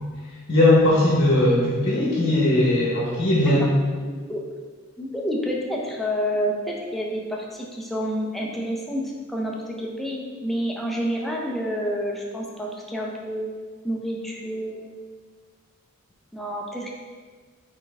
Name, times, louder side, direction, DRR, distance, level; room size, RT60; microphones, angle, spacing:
voice 1, 0.5-3.7, left 1 dB, 55° left, -5 dB, 0.9 m, -19 dB
voice 2, 4.1-4.4 5.0-9.0 9.3-13.5 13.8-14.9 16.3-16.9, equal, ahead, -2 dB, 0.6 m, -28 dB
4.3 x 3.7 x 3.3 m, 1.5 s
head